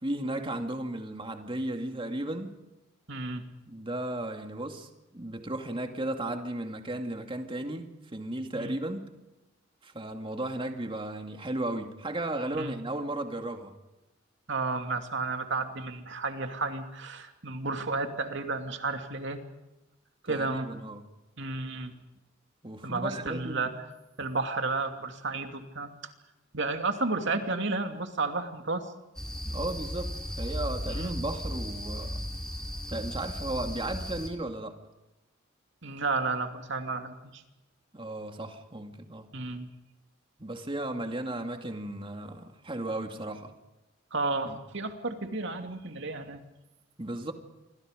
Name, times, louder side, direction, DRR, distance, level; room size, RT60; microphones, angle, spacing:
voice 1, 0.0-2.5 3.7-9.0 9.8-13.7 20.3-21.0 22.6-23.7 29.5-30.1 30.4-32.2 32.9-34.8 37.9-39.3 40.4-43.5 44.4-44.6 47.0-47.3, right 1 dB, 25° right, 5 dB, 2.4 m, -35 dB
voice 2, 3.1-3.4 8.5-8.8 12.6-12.8 14.5-19.4 20.2-20.7 21.4-21.9 22.8-23.7 24.2-25.9 26.5-28.9 30.9-31.1 35.8-37.4 39.3-39.7 44.1-46.4, right 3 dB, 65° right, 5 dB, 2.7 m, -32 dB
sound 1, 29.2-34.3, equal, 5° left, 4.1 m, -36 dB
28.5 x 24.5 x 5.2 m, 0.98 s
head